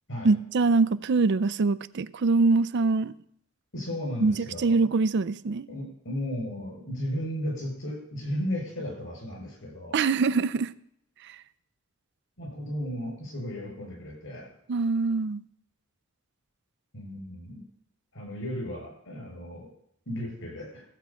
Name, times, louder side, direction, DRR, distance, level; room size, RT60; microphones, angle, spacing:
voice 1, 0.2-3.1 4.2-5.7 9.9-10.7 14.7-15.4, right 4 dB, 55° right, 0.5 m, -24 dB
voice 2, 3.7-4.9 5.7-10.0 12.4-14.5 16.9-17.6 18.1-19.7 20.1-20.8, equal, 65° left, 6.8 m, -35 dB
15.0 x 8.2 x 5.6 m
head